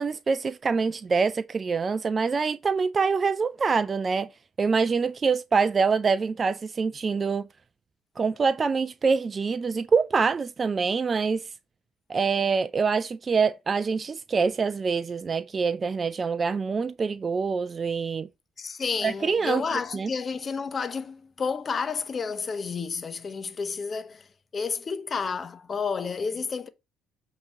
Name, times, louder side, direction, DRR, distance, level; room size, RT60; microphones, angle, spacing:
voice 1, 0.0-4.3 4.6-7.5 8.2-11.5 12.1-18.3 19.0-19.6 19.9-20.1, right 5 dB, 35° right, 0.4 m, -25 dB
voice 2, 18.6-24.3 24.5-26.7, left 5 dB, 40° left, 0.9 m, -31 dB
7.9 x 3.0 x 5.5 m
supercardioid pair, 75°, 0 cm